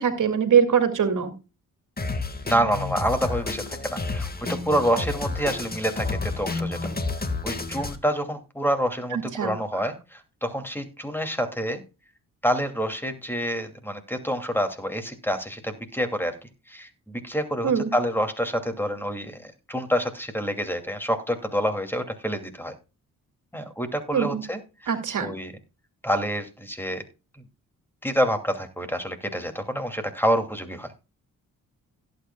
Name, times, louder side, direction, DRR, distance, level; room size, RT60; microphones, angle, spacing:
voice 1, 0.0-1.3 9.1-9.8 17.6-17.9 24.1-24.4 24.9-25.3, right 7 dB, 65° right, 6 dB, 2.4 m, -23 dB
Drum kit, 2.0-8.0, left 3 dB, 25° left, 1.8 m, -30 dB
voice 2, 2.4-6.9 7.4-11.8 12.4-16.4 16.7-22.7 23.5-24.9 25.2-25.5 26.0-27.0 28.0-30.9, equal, 5° left, 7 dB, 2.6 m, -27 dB
17.0 x 8.5 x 2.3 m, 0.29 s
cardioid pair, 70°, 33 cm